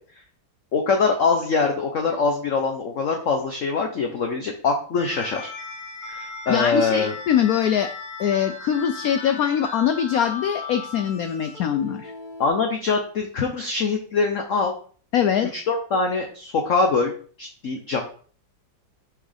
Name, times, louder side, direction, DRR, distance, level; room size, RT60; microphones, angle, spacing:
voice 1, 0.7-5.5 6.1-7.1 12.4-14.7 15.5-17.1 17.4-18.0, left 4 dB, 55° left, 3 dB, 0.9 m, -23 dB
sound 1, 5.0-12.5, left 4 dB, 30° left, 1.3 m, -37 dB
voice 2, 6.5-7.9 8.2-12.1 15.1-15.5, left 9 dB, 85° left, 9 dB, 0.8 m, -22 dB
6.2 x 5.9 x 3.4 m, 0.44 s
omnidirectional pair, 2.1 m